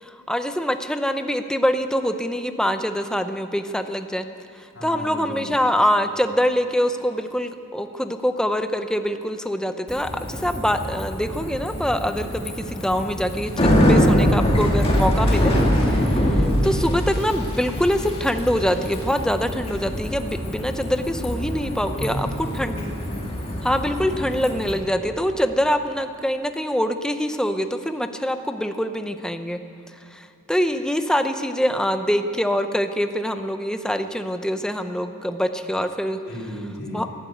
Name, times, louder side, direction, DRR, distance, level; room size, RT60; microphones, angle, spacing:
voice 1, 0.0-4.2 4.6-15.5 15.9-22.8 23.6-29.6 30.1-36.2 36.9-37.2, equal, 5° left, 8 dB, 0.6 m, -24 dB
voice 2, 4.7-5.5 21.9-22.3 22.6-23.3 36.2-37.0, equal, 70° left, -4 dB, 3.2 m, -33 dB
Bicycle, 9.9-24.7, equal, 25° left, 2.1 m, -23 dB
13.5 x 12.0 x 9.1 m, 2.4 s
head